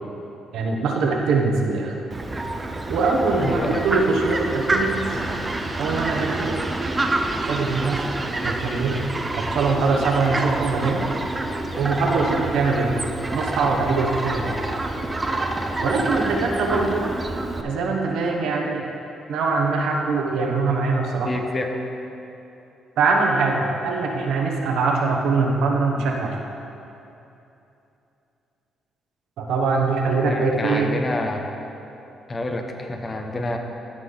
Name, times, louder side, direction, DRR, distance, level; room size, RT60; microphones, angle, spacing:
voice 1, 0.5-1.9 2.9-5.2 5.8-6.6 7.4-8.1 8.4-9.0 9.4-11.1 11.8-14.5 15.8-17.0 17.6-18.9 19.3-21.3 23.0-26.4 29.4-30.9, right 4 dB, 80° right, 0 dB, 1.0 m, -22 dB
Fowl, 2.1-17.6, right 2 dB, 20° right, 0.6 m, -27 dB
voice 2, 3.4-3.8 21.2-21.7 30.2-31.5 32.3-33.6, left 2 dB, 30° left, 3 dB, 0.9 m, -28 dB
13.0 x 5.3 x 4.0 m, 2.9 s
cardioid pair, 90°, 0 cm